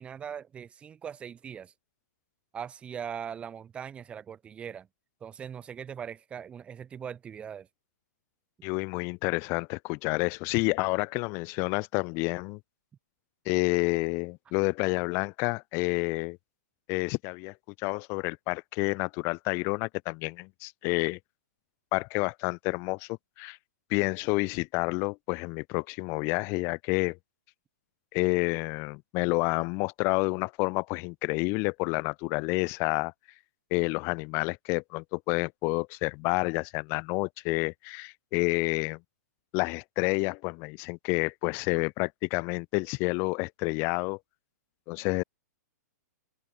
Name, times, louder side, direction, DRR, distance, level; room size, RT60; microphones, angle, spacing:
voice 1, 0.0-1.7 2.5-4.9 5.2-7.7, right 8 dB, 10° right, 4.5 m, -40 dB
voice 2, 8.6-12.6 13.4-16.4 16.9-21.2 21.9-23.1 23.4-23.6 23.9-27.2 28.1-33.1 33.7-39.0 39.5-44.2 44.9-45.2, left 29 dB, 25° left, 1.4 m, -29 dB
open air
hypercardioid pair, 165°, 9 cm